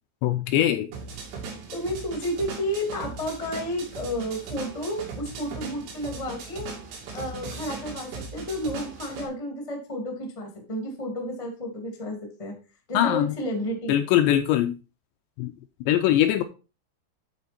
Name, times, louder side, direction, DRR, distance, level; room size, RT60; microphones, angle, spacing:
voice 1, 0.2-0.9 12.9-13.3 13.9-14.7 15.4-15.5 15.9-16.4, left 12 dB, 85° left, 2.5 m, -21 dB
sound 1, 0.9-9.3, right 4 dB, 90° right, 4.9 m, -38 dB
voice 2, 1.7-6.7 7.1-12.5 12.9-14.1, equal, 55° left, 0.3 m, -31 dB
10.5 x 4.3 x 4.2 m
omnidirectional pair, 5.4 m